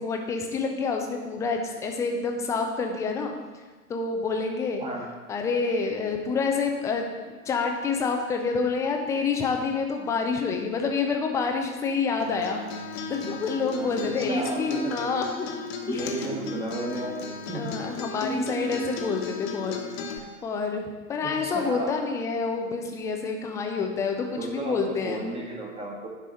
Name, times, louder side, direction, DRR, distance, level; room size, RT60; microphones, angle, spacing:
voice 1, 0.0-3.3 3.9-4.8 5.3-12.6 13.1-15.5 15.9-16.4 17.5-19.8 20.4-20.8 21.1-25.2, left 4 dB, 5° left, 3 dB, 0.4 m, -28 dB
Acoustic guitar, 12.2-20.2, left 2 dB, 45° left, 1.3 m, -35 dB
voice 2, 14.0-14.9 15.9-17.2 17.5-17.7 21.2-22.0 24.4-26.1, right 2 dB, 15° right, -1 dB, 1.4 m, -33 dB
10.0 x 4.8 x 5.6 m, 1.4 s
figure-of-eight pair, 100°, 44 cm